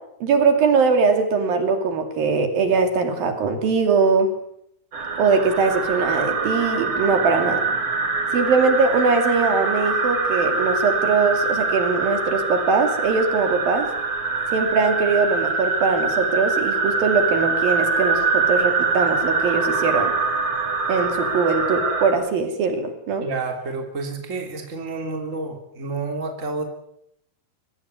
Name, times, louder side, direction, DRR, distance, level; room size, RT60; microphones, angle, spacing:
voice 1, 0.2-4.3 5.2-7.6 8.3-13.9 14.5-20.1 20.9-23.3, right 4 dB, 75° right, 6 dB, 4.4 m, -21 dB
sound 1, 4.9-22.1, right 4 dB, 35° right, 3.9 m, -24 dB
voice 2, 23.2-26.6, right 3 dB, 20° right, 4 dB, 3.3 m, -29 dB
23.0 x 17.0 x 9.6 m, 0.76 s
omnidirectional pair, 4.2 m